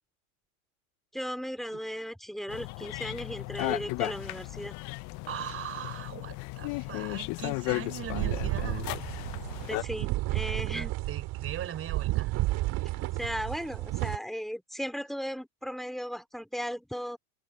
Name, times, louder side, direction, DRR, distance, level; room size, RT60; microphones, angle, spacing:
voice 1, 1.1-4.8 9.7-10.9 13.2-17.2, equal, ahead, 3.0 m, -36 dB
sound 1, 2.5-9.8, left 24 dB, 40° left, 0.6 m, -35 dB
voice 2, 5.3-9.0 10.7-12.3 13.0-13.1, right 10 dB, 30° right, 3.6 m, -40 dB
sound 2, 7.9-14.2, right 19 dB, 45° right, 2.3 m, -32 dB
supercardioid pair, 115°, 44 cm